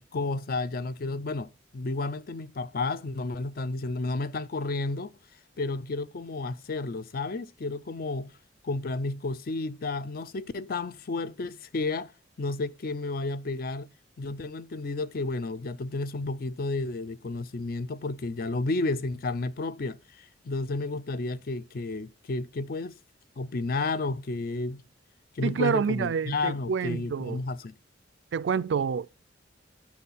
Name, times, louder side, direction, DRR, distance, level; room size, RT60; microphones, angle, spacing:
voice 1, 0.0-5.1 5.6-8.3 8.6-12.1 12.4-13.9 14.2-23.0 23.4-24.8 25.3-27.7, left 3 dB, 50° left, 0.5 m, -32 dB
voice 2, 25.4-27.4 28.3-29.1, right 6 dB, 70° right, 0.3 m, -28 dB
10.5 x 4.3 x 5.5 m
head